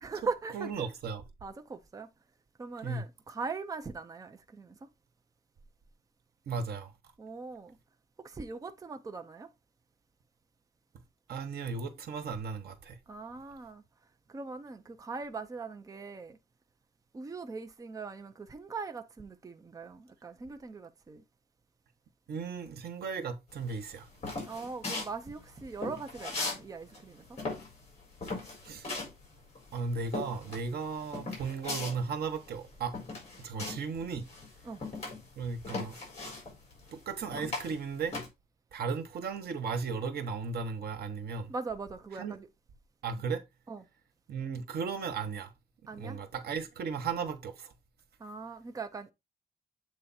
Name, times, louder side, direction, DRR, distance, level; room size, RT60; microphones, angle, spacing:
voice 1, 0.0-0.9 1.4-2.1 2.6-4.9 7.2-7.8 8.2-9.5 13.1-13.8 14.3-16.4 17.1-21.2 24.5-27.4 34.6-34.8 41.5-42.5 43.7-43.8 45.9-46.2 48.2-49.1, right 4 dB, 20° right, 0.6 m, -40 dB
voice 2, 0.5-1.2 2.8-3.0 6.5-6.9 11.3-13.0 22.3-24.1 28.6-28.9 29.7-33.0 33.4-34.3 35.4-36.0 36.9-38.2 38.7-41.5 42.2-42.3 43.0-43.4 44.3-45.5 46.0-47.7, right 5 dB, 75° right, 1.3 m, -35 dB
sound 1, 23.6-26.6 26.9-34.0 34.2-38.3, left 3 dB, 45° left, 4.5 m, -38 dB
7.8 x 3.4 x 4.2 m
wide cardioid pair, 160°, 16 cm